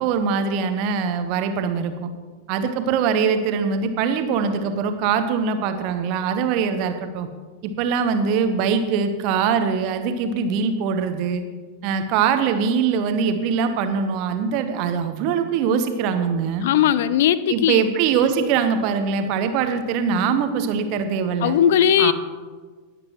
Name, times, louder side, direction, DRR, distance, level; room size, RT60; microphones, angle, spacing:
voice 1, 0.0-2.1 2.5-7.3 7.6-11.4 11.8-16.7 17.5-21.6 22.0-22.1, right 6 dB, 45° right, 8 dB, 1.1 m, -22 dB
voice 2, 16.6-17.8 21.4-22.1, left 10 dB, 55° left, 16 dB, 0.4 m, -18 dB
19.5 x 8.2 x 3.1 m, 1.4 s
figure-of-eight pair, 90°, 0 cm